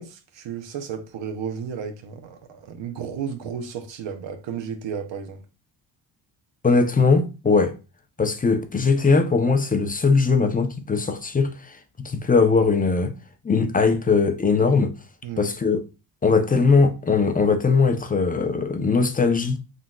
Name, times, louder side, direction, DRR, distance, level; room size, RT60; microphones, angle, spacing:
voice 1, 0.0-5.4 15.2-15.5, right 7 dB, 60° right, 0.8 m, -33 dB
voice 2, 6.6-7.8 8.2-13.1 13.4-14.9 15.4-15.8 16.2-19.6, left 4 dB, 20° left, 0.5 m, -20 dB
3.7 x 2.5 x 2.3 m
supercardioid pair, 55°, 50 cm